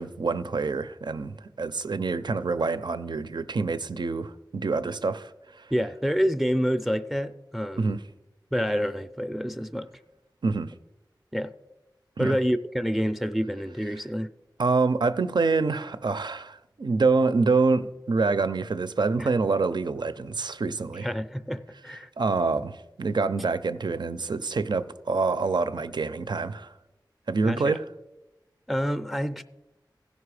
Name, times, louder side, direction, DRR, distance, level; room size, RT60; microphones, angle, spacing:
voice 1, 0.0-5.3 5.6-5.7 7.8-8.0 10.4-10.7 12.2-12.4 14.6-21.1 22.2-26.7 27.3-27.8, right 4 dB, 70° right, 0.5 m, -26 dB
voice 2, 5.7-8.0 8.5-9.9 11.3-11.5 12.2-14.3 19.2-19.3 21.0-22.1 27.4-27.8 28.7-29.4, equal, ahead, 0.5 m, -28 dB
15.5 x 5.4 x 4.8 m
wide cardioid pair, 55°, 8 cm